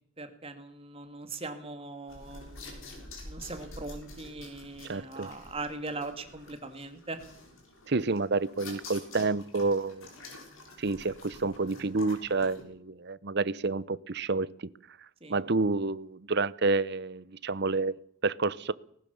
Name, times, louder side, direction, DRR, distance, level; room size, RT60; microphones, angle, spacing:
voice 1, 0.2-7.2 15.2-15.4, right 3 dB, 25° right, 8 dB, 2.4 m, -40 dB
sound 1, 2.1-12.6, left 2 dB, 70° left, 6.7 m, -48 dB
voice 2, 4.8-5.3 7.9-10.1 10.8-14.7 15.3-18.0 18.2-18.7, right 3 dB, 50° right, 19 dB, 0.8 m, -29 dB
19.5 x 18.5 x 7.1 m, 0.66 s
head